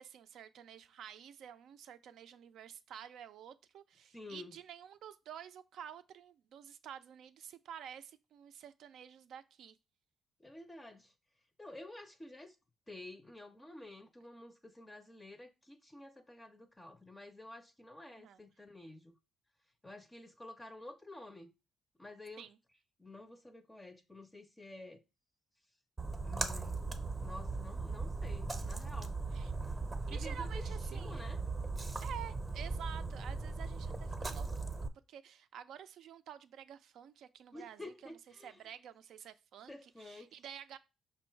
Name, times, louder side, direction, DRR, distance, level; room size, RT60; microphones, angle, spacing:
voice 1, 0.0-9.8 18.1-18.4 22.4-22.6 29.3-29.5 30.1-31.3 32.0-34.5 35.1-38.2 38.4-40.8, right 9 dB, 75° right, 0.4 m, -50 dB
voice 2, 4.1-4.6 10.4-11.1 11.6-12.6 12.9-19.2 19.8-21.5 22.0-22.5 23.0-25.0 26.2-26.9 27.2-29.2 30.0-31.4 37.5-38.7 39.7-40.3, left 2 dB, 15° left, 0.5 m, -51 dB
Splash splatter, 26.0-34.9, right 3 dB, 25° right, 0.7 m, -38 dB
5.3 x 2.3 x 4.4 m
cardioid pair, 90°, 0 cm